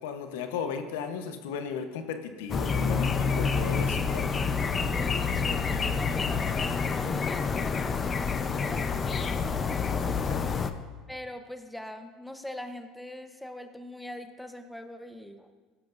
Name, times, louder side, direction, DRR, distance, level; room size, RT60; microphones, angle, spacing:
voice 1, 0.0-4.2 10.2-10.4, left 6 dB, 85° left, 7 dB, 1.0 m, -35 dB
sound 1, 2.5-10.7, left 5 dB, 30° left, 0.7 m, -28 dB
voice 2, 4.9-9.9 11.1-15.5, left 1 dB, 5° left, 7 dB, 0.9 m, -42 dB
16.0 x 12.5 x 2.6 m, 1.3 s
supercardioid pair, 100°, 0 cm